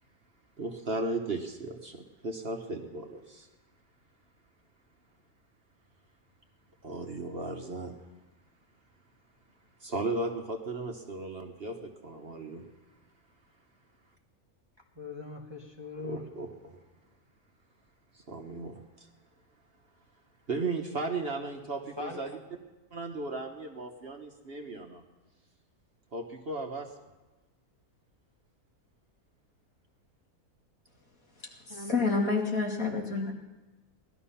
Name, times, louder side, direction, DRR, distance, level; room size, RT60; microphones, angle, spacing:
voice 1, 0.6-3.5 6.8-8.0 9.8-12.7 16.0-16.8 18.1-19.1 20.5-22.3 22.9-25.0 26.1-26.9, right 3 dB, 45° right, 3 dB, 1.3 m, -36 dB
voice 2, 15.0-16.3 22.0-22.5 31.7-32.1, left 2 dB, 20° right, 0 dB, 1.2 m, -41 dB
voice 3, 31.7-33.3, left 4 dB, 65° left, -1 dB, 3.0 m, -28 dB
19.0 x 12.5 x 5.7 m, 1.1 s
omnidirectional pair, 1.6 m